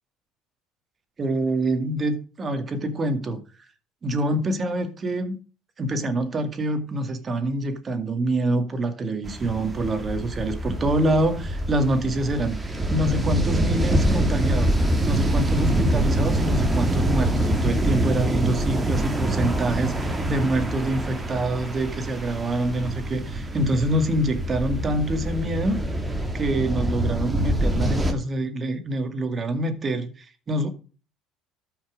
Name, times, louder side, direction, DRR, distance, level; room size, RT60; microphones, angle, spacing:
voice 1, 1.2-3.4 4.0-5.4 5.8-14.8 15.0-25.8 26.3-30.7, right 1 dB, 30° right, 2.1 m, -26 dB
sound 1, 9.2-28.1, right 1 dB, 15° right, 2.2 m, -25 dB
13.0 x 5.9 x 5.0 m
supercardioid pair, 95°, 0 cm